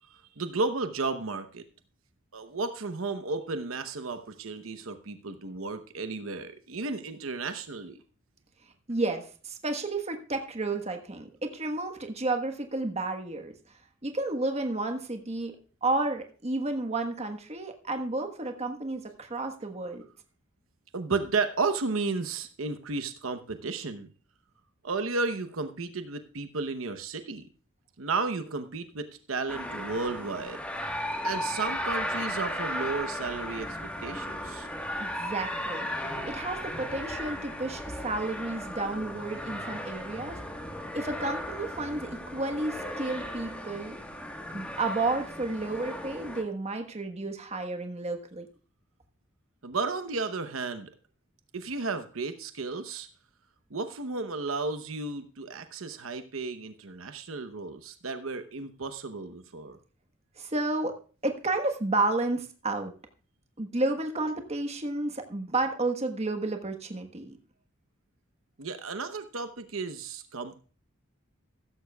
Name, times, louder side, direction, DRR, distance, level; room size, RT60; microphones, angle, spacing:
voice 1, 0.1-1.6 2.3-8.0 20.9-24.1 24.8-27.4 28.0-30.6 31.2-34.7 49.6-50.9 51.5-53.1 53.7-59.8 68.6-70.6, right 3 dB, 85° right, 9 dB, 0.9 m, -33 dB
voice 2, 8.9-13.5 14.0-20.0 35.0-35.9 36.2-40.4 40.9-44.0 44.5-48.5 60.4-60.9 61.2-62.9 63.6-67.4, right 2 dB, 30° right, 5 dB, 1.3 m, -31 dB
sound 1, 29.5-46.4, equal, 5° left, 1.4 m, -36 dB
15.5 x 13.5 x 2.3 m, 0.38 s
head